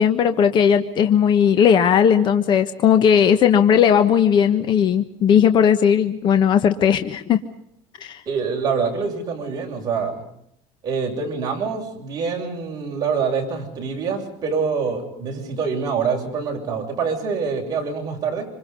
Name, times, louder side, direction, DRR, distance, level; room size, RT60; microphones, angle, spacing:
voice 1, 0.0-7.4 8.0-8.2, left 8 dB, 35° left, 9 dB, 1.3 m, -17 dB
voice 2, 8.3-10.2 10.8-18.5, right 5 dB, 30° right, 0 dB, 7.5 m, -25 dB
27.0 x 26.5 x 5.5 m, 0.72 s
cardioid pair, 155°, 13 cm